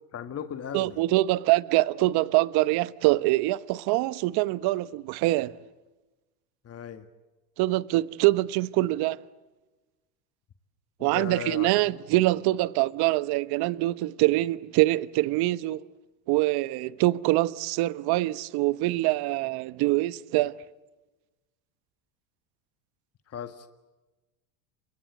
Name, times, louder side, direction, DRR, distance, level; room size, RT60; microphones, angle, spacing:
voice 1, 0.1-1.0 6.6-7.0 11.0-12.0 23.3-23.7, left 8 dB, 35° left, 1.8 m, -37 dB
voice 2, 0.7-5.5 7.6-9.2 11.0-15.8 16.3-20.6, right 18 dB, 55° right, 1.1 m, -24 dB
29.5 x 25.0 x 7.8 m
hypercardioid pair, 90°, 44 cm